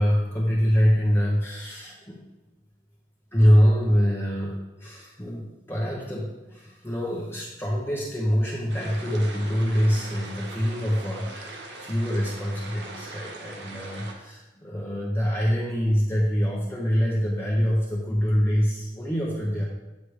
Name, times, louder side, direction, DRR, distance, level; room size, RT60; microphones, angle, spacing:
voice 1, 0.0-2.2 3.3-4.5 4.8-19.6, equal, 15° left, -4 dB, 0.8 m, -24 dB
sound 1, 8.7-14.1, right 2 dB, 70° right, 0.9 m, -41 dB
8.2 x 3.3 x 4.8 m, 1.1 s
head